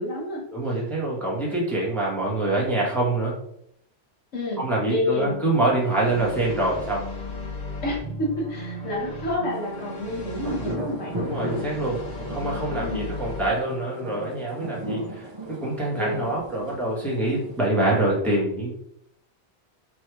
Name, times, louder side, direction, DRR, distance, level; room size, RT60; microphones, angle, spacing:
voice 1, 0.0-0.4 4.3-5.3 7.8-11.2 12.8-13.1 15.9-16.3, left 2 dB, 90° left, -3 dB, 1.3 m, -29 dB
voice 2, 0.5-3.4 4.6-7.0 11.1-12.0 12.3-18.7, right 2 dB, ahead, -5 dB, 1.0 m, -25 dB
sound 1, 5.2-13.5, left 1 dB, 40° left, 1.2 m, -36 dB
sound 2, 9.6-17.7, right 1 dB, 45° right, 0.3 m, -36 dB
3.3 x 2.7 x 4.4 m, 0.73 s
omnidirectional pair, 1.2 m